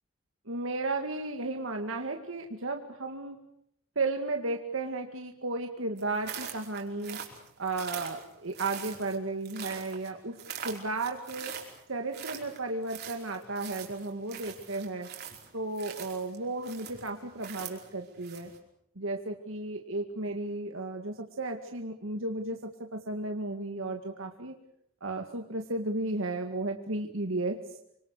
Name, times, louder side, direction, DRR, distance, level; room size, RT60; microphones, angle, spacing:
voice 1, 0.5-3.4 4.0-7.2 7.6-10.4 10.6-11.6 11.9-15.1 15.5-18.5 19.0-24.6 25.0-27.6, right 2 dB, 75° right, 4 dB, 2.1 m, -34 dB
sound 1, 6.0-18.6, right 8 dB, 50° right, 5.0 m, -43 dB
27.0 x 25.5 x 6.8 m, 0.74 s
head